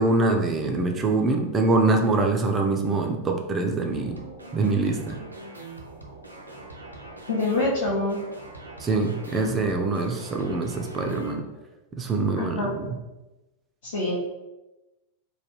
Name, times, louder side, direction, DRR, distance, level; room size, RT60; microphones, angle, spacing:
voice 1, 0.0-4.2 4.5-5.2 8.8-11.4 12.0-12.9, right 3 dB, 20° right, 3 dB, 0.4 m, -24 dB
sound 1, 3.9-11.3, right 2 dB, 85° right, 0.4 m, -43 dB
voice 2, 7.3-8.2 12.4-12.7 13.8-14.1, left 2 dB, 60° left, -6 dB, 0.7 m, -25 dB
3.2 x 2.2 x 3.0 m, 1.0 s
figure-of-eight pair, 90°, 0 cm